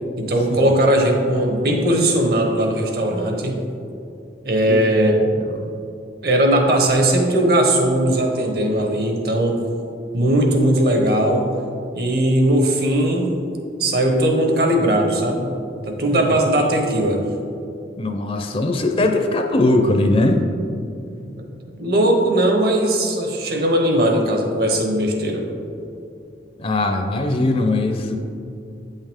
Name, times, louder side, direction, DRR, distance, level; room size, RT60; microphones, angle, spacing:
voice 1, 0.2-3.6 4.4-5.2 6.2-9.6 10.1-11.5 11.9-13.3 13.8-15.5 15.9-17.2 21.4-21.5 21.8-25.4, right 1 dB, 55° right, 2 dB, 0.9 m, -18 dB
voice 2, 16.1-16.6 18.0-20.4 26.6-28.2, left 2 dB, 30° left, 5 dB, 0.5 m, -20 dB
8.6 x 5.5 x 3.6 m, 2.6 s
head